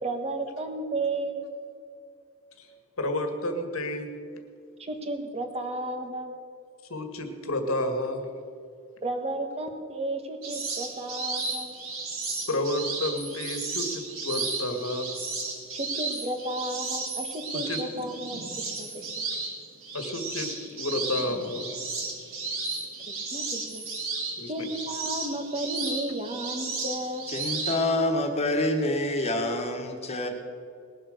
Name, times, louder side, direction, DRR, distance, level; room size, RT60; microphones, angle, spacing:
voice 1, 0.0-1.4 4.8-6.4 9.0-11.7 15.7-18.4 18.8-19.2 23.1-23.9 24.5-27.3, right 2 dB, 30° right, 5 dB, 1.5 m, -33 dB
voice 2, 3.0-4.1 6.9-8.2 12.5-15.1 17.6-17.8 19.9-21.8 24.4-24.7, left 1 dB, 90° left, 5 dB, 1.8 m, -30 dB
sound 1, 10.4-27.8, right 3 dB, 70° right, 3.1 m, -34 dB
voice 3, 27.3-30.3, left 1 dB, 30° left, 3 dB, 1.7 m, -27 dB
20.0 x 7.8 x 6.6 m, 2.4 s
head